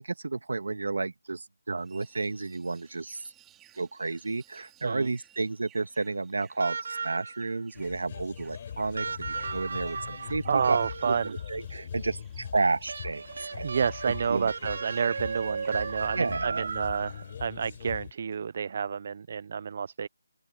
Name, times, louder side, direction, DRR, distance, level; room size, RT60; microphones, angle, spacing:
voice 1, 0.0-3.2 3.7-10.8 11.0-13.2 13.5-13.7 14.0-14.5 15.1-15.2 16.1-16.7, right 3 dB, 75° right, 1.5 m, -31 dB
sound 1, 1.8-16.1, right 12 dB, 5° right, 2.5 m, -61 dB
sound 2, 6.6-7.5 9.0-11.5 12.9-17.3 18.7-18.8, right 5 dB, 50° right, 1.9 m, -36 dB
sound 3, 7.7-18.1, left 8 dB, 30° left, 4.3 m, -42 dB
voice 2, 10.1-11.3 13.6-20.1, right 6 dB, 35° right, 0.3 m, -30 dB
open air
hypercardioid pair, 175°, 0 cm